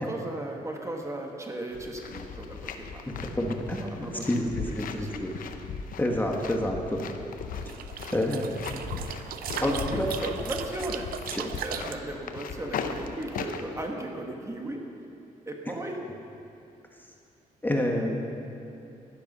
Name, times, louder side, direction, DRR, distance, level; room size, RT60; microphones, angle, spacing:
voice 1, 0.0-3.4 3.8-5.2 9.6-11.1 11.6-14.8 15.4-16.0, right 1 dB, 20° right, 1 dB, 1.5 m, -36 dB
sound 1, 1.7-13.8, left 6 dB, 70° left, 0.8 m, -38 dB
voice 2, 3.1-5.3 6.0-7.0 8.1-8.5 9.6-10.1 11.3-11.5 17.6-18.2, left 1 dB, 15° left, 1 dB, 1.5 m, -28 dB
sound 2, 7.5-11.9, right 9 dB, 85° right, 0.6 m, -38 dB
12.0 x 12.0 x 5.4 m, 2.7 s
cardioid pair, 95°, 15 cm